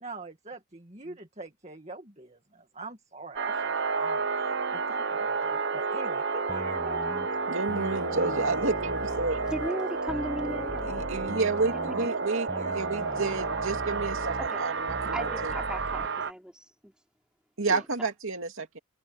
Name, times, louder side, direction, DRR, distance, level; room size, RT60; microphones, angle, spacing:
voice 1, 0.0-7.1, right 3 dB, 30° right, 2.1 m, -43 dB
sound 1, 3.4-16.3, right 4 dB, 55° right, 0.8 m, -31 dB
sound 2, 6.5-16.1, left 1 dB, 10° left, 1.3 m, -41 dB
voice 2, 7.5-9.4 10.8-15.5 17.6-18.8, right 3 dB, 70° right, 2.6 m, -30 dB
sound 3, 7.8-12.3, left 2 dB, 60° left, 5.3 m, -44 dB
voice 3, 9.5-11.0 11.9-12.2 14.4-14.6 15.1-16.9 17.7-17.8, equal, 5° right, 4.3 m, -37 dB
head